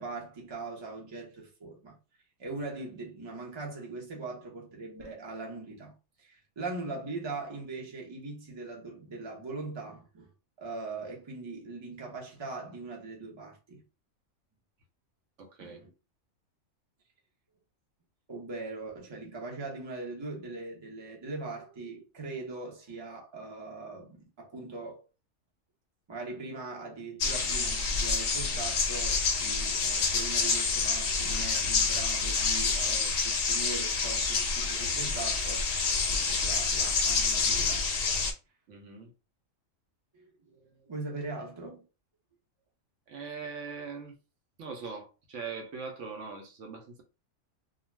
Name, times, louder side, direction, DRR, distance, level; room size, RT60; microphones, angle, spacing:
voice 1, 0.0-2.0 2.4-10.3 10.6-13.8 15.6-15.9 18.3-25.0 26.1-35.7 36.1-37.9 40.1-41.8, right 3 dB, 30° right, 0.6 m, -41 dB
voice 2, 15.4-15.8 38.7-39.1 43.1-44.2 44.6-47.0, right 5 dB, 70° right, 0.9 m, -41 dB
sound 1, 27.2-38.3, left 4 dB, 55° left, 0.7 m, -28 dB
2.4 x 2.3 x 3.1 m
omnidirectional pair, 1.4 m